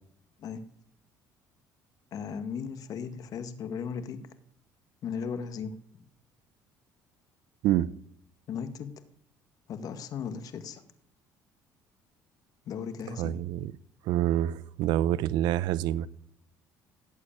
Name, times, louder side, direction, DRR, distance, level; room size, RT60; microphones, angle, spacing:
voice 1, 2.1-4.2 5.0-5.7 8.5-8.9 9.7-10.8 12.7-13.4, left 6 dB, 55° left, 1.8 m, -36 dB
voice 2, 13.2-13.7 14.0-16.1, right 12 dB, 80° right, 0.7 m, -27 dB
17.5 x 8.4 x 8.8 m
cardioid pair, 110°, 7 cm